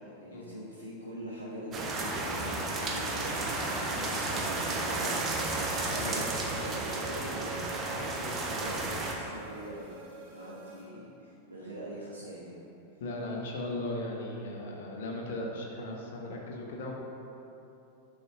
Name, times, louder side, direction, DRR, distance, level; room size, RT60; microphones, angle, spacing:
voice 1, 0.0-12.6, equal, 80° right, -8 dB, 1.1 m, -43 dB
sound 1, 1.7-9.1, right 2 dB, 25° right, 0.8 m, -33 dB
sound 2, 4.7-10.8, right 6 dB, 50° right, 1.6 m, -47 dB
voice 2, 5.9-6.2 13.0-16.9, left 1 dB, 55° left, -1 dB, 1.1 m, -37 dB
11.0 x 5.0 x 2.5 m, 2.8 s
figure-of-eight pair, 90°, 0 cm